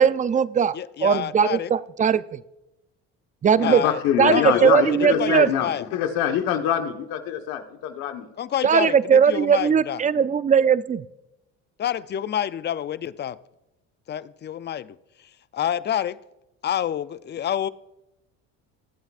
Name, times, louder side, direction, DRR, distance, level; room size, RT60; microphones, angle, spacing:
voice 1, 0.0-0.8 1.0-2.4 3.4-3.8 4.2-5.5 8.6-11.0, right 7 dB, 25° right, 0.4 m, -19 dB
voice 2, 0.7-1.7 3.6-4.0 4.3-5.9 8.4-10.0 11.8-13.4 14.1-15.0 15.5-16.2 16.6-17.7, left 10 dB, 30° left, 0.5 m, -28 dB
voice 3, 3.6-8.3, left 10 dB, 75° left, 1.3 m, -25 dB
21.5 x 8.0 x 2.5 m
supercardioid pair, 85°, 34 cm